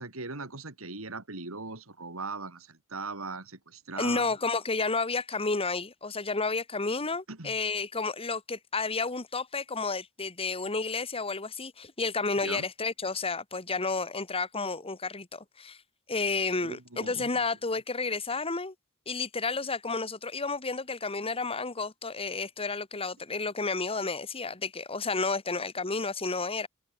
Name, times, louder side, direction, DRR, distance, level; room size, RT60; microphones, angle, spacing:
voice 1, 0.0-4.3 7.3-7.6 12.4-12.7 16.6-17.4, right 3 dB, 75° right, 3.2 m, -39 dB
voice 2, 4.0-15.8 16.1-18.7 19.1-26.7, left 3 dB, 25° left, 2.0 m, -31 dB
head